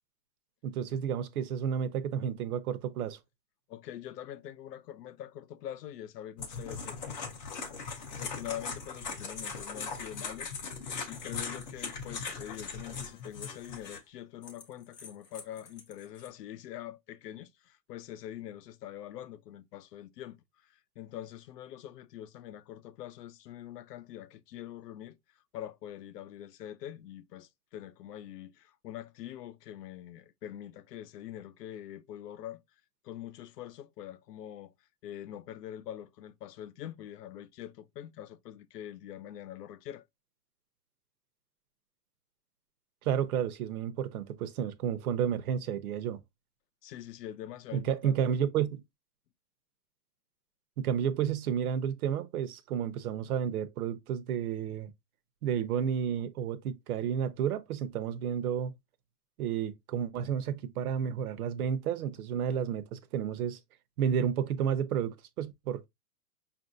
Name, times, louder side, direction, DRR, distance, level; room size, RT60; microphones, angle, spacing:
voice 1, 0.6-3.2 43.0-46.2 47.7-48.8 50.8-54.9 55.4-58.7 59.4-63.6 64.0-65.9, right 8 dB, 60° right, 0.7 m, -31 dB
voice 2, 3.7-7.0 8.1-10.5 11.1-25.2 25.5-32.6 33.0-34.7 35.0-40.0 46.8-48.2, left 11 dB, 70° left, 0.6 m, -44 dB
sound 1, 6.4-14.0 14.4-16.3, left 5 dB, 25° left, 0.6 m, -39 dB
5.4 x 2.6 x 2.5 m
hypercardioid pair, 160°, 50 cm